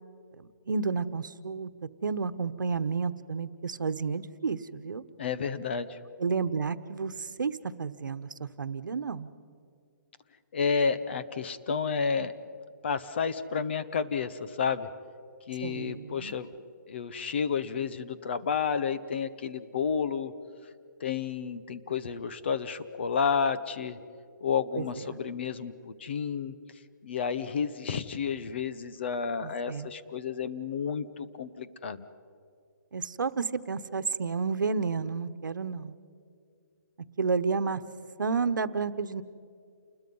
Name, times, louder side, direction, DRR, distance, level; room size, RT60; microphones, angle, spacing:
voice 1, 0.4-5.0 6.2-9.3 15.6-16.3 24.8-24.9 29.4-29.9 32.9-36.0 37.2-37.8 38.2-39.2, right 5 dB, 90° right, 12 dB, 1.1 m, -31 dB
voice 2, 5.2-6.0 10.5-12.3 12.8-14.9 15.5-16.5 16.9-20.3 21.0-24.0 24.4-26.5 27.0-32.1, left 6 dB, 35° left, 12 dB, 0.9 m, -31 dB
29.0 x 21.0 x 5.5 m, 2.3 s
hypercardioid pair, 175°, 10 cm